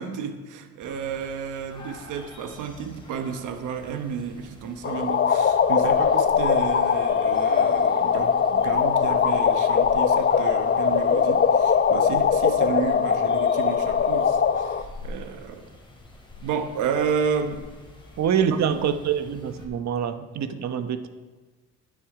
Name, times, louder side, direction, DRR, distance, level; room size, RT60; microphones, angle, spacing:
voice 1, 0.0-15.7 16.4-17.7 18.5-18.6, right 6 dB, 90° right, 1.2 m, -31 dB
sound 1, 0.8-19.6, left 2 dB, 15° left, 3.5 m, -46 dB
sound 2, 4.8-14.8, left 7 dB, 35° left, 0.7 m, -21 dB
voice 2, 18.2-21.1, right 8 dB, 65° right, 1.0 m, -25 dB
12.0 x 9.7 x 4.9 m
cardioid pair, 90°, 30 cm